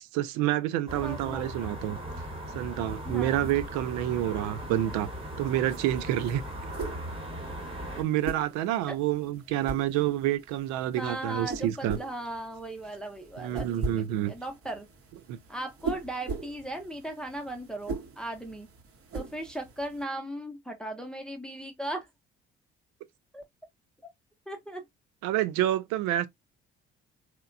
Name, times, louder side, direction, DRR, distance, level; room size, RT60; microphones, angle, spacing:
voice 1, 0.0-2.0 2.5-5.1 5.4-6.4 8.0-12.0 13.4-14.3 15.3-15.4 25.2-26.3, right 13 dB, 65° right, 0.5 m, -28 dB
voice 2, 0.9-1.5 3.0-3.6 8.9-9.0 11.0-14.9 15.5-18.7 19.1-22.1 23.3-23.4 24.5-24.8, right 1 dB, ahead, 0.7 m, -37 dB
sound 1, 0.9-8.0, equal, 15° right, 1.1 m, -38 dB
sound 2, 2.8-20.0, right 4 dB, 45° right, 0.9 m, -41 dB
2.8 x 2.1 x 2.4 m
hypercardioid pair, 45°, 31 cm